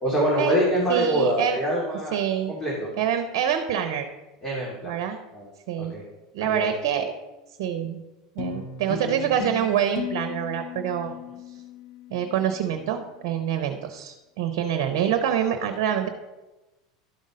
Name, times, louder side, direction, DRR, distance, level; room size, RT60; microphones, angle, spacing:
voice 1, 0.0-2.2 2.5-2.9 4.4-4.9 5.3-5.5 5.8-6.0 6.4-6.7, equal, 25° left, -4 dB, 3.0 m, -25 dB
voice 2, 0.9-1.6 2.1-2.5 3.0-4.1 4.8-5.2 5.7-6.0 6.3-7.1 7.6-8.0 8.4-11.1 12.1-16.1, right 9 dB, 65° right, 7 dB, 0.9 m, -26 dB
sound 1, 8.4-13.0, left 7 dB, 75° left, 1.2 m, -37 dB
12.0 x 5.3 x 5.2 m, 1.1 s
hypercardioid pair, 85°, 2 cm